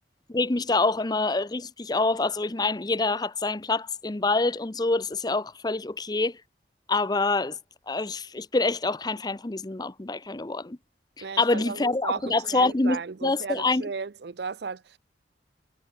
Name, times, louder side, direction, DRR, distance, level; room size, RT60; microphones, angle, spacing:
voice 1, 0.3-6.4 6.9-7.6 7.9-10.8 11.2-13.9, left 3 dB, 20° left, 0.6 m, -26 dB
voice 2, 11.2-15.0, right 5 dB, 60° right, 0.6 m, -35 dB
head